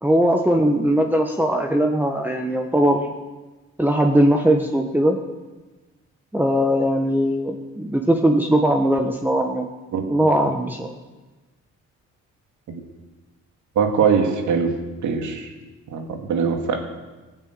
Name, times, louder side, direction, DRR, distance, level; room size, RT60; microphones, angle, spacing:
voice 1, 0.0-3.1 3.8-5.2 6.3-9.7 10.1-10.9, right 1 dB, 5° right, 2 dB, 1.3 m, -20 dB
voice 2, 13.8-14.8 15.0-15.5 15.9-16.8, right 6 dB, 75° right, 4 dB, 2.4 m, -21 dB
16.0 x 9.3 x 8.1 m, 1.2 s
cardioid pair, 90°, 30 cm